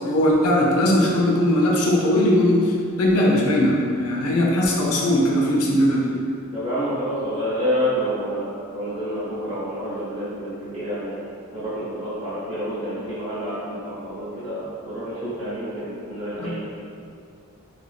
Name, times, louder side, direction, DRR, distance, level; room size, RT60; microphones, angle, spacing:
voice 1, 0.0-6.1 16.4-16.6, left 1 dB, 90° left, -2 dB, 0.5 m, -19 dB
voice 2, 6.5-11.2 11.5-16.6, equal, 25° right, -15 dB, 1.0 m, -28 dB
2.8 x 2.5 x 2.4 m, 2.4 s
head